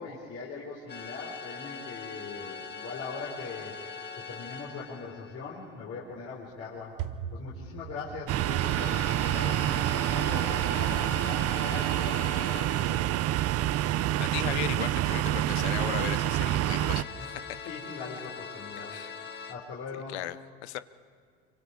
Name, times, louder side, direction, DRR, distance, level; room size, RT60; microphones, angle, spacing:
voice 1, 0.0-3.7 4.2-7.0 7.3-13.1 17.2-17.4 17.6-20.2, left 4 dB, 45° left, -5 dB, 4.2 m, -41 dB
sound 1, 0.9-5.8 8.6-13.7 16.6-19.5, left 5 dB, 30° left, 1.6 m, -42 dB
sound 2, 6.1-17.5, right 8 dB, 70° right, 1.1 m, -47 dB
sound 3, 8.3-17.0, right 13 dB, 50° right, 0.7 m, -27 dB
voice 2, 14.2-17.4 18.9-19.2 20.1-20.4 20.6-20.8, left 15 dB, 85° left, 16 dB, 0.7 m, -36 dB
26.0 x 24.5 x 4.9 m, 2.1 s
hypercardioid pair, 80°, 32 cm